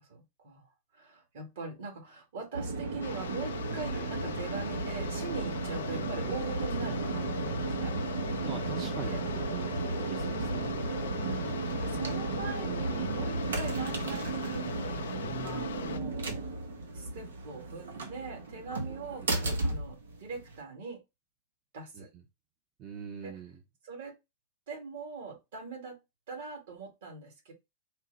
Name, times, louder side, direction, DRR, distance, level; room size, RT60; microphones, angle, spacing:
voice 1, 0.0-8.0 9.0-9.2 11.2-15.0 15.4-16.5 16.9-21.0 21.7-22.1 23.2-23.4 23.8-24.1 24.7-26.0 26.3-27.5, right 4 dB, 70° right, 1.9 m, -42 dB
sound 1, 2.5-20.6, right 3 dB, 85° right, 0.9 m, -34 dB
sound 2, 3.0-16.0, left 8 dB, 85° left, 0.4 m, -41 dB
voice 2, 8.4-10.7 15.3-15.7 19.0-19.1 22.0-22.1 22.8-23.5, right 5 dB, 40° right, 0.7 m, -43 dB
4.4 x 2.2 x 3.9 m
hypercardioid pair, 115°, 0 cm